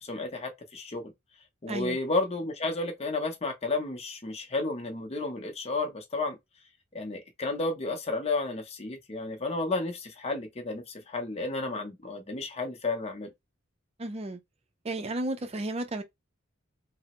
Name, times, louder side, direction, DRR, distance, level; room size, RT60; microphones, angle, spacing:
voice 1, 0.0-1.1 1.6-6.4 6.9-13.3, left 3 dB, 30° left, 0.7 m, -32 dB
voice 2, 1.7-2.0 14.0-14.4 14.8-16.0, right 2 dB, 30° right, 0.5 m, -33 dB
3.2 x 2.0 x 2.9 m
head